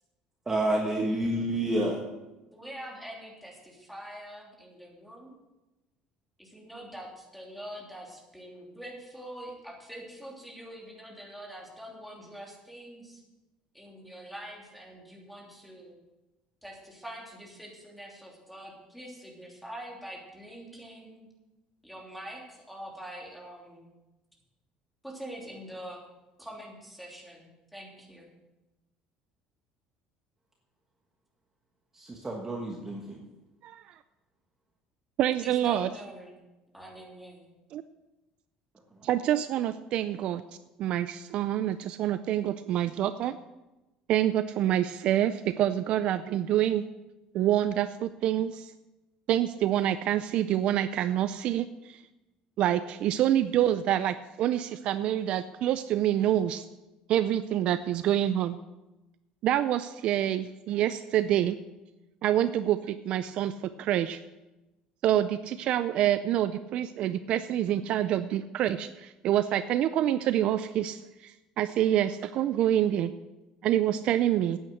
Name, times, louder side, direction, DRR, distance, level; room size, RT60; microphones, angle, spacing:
voice 1, 0.5-2.0 31.9-33.2, right 1 dB, 15° right, -1 dB, 1.4 m, -29 dB
voice 2, 2.5-5.4 6.4-13.2 13.7-16.0 16.6-21.3 21.8-23.9 25.0-26.0 26.4-28.3 35.4-36.4 36.7-37.6, right 1 dB, ahead, -2 dB, 3.1 m, -44 dB
voice 3, 33.6-33.9 35.2-35.9 37.7-37.8 39.0-40.4 40.8-43.4 44.1-46.8 47.3-48.7 49.3-52.0 52.6-56.7 57.1-58.6 59.4-61.6 62.2-64.2 65.0-73.1 73.6-74.6, right 11 dB, 50° right, 12 dB, 0.4 m, -27 dB
9.3 x 8.7 x 7.8 m, 1.0 s
cardioid pair, 150°, 2 cm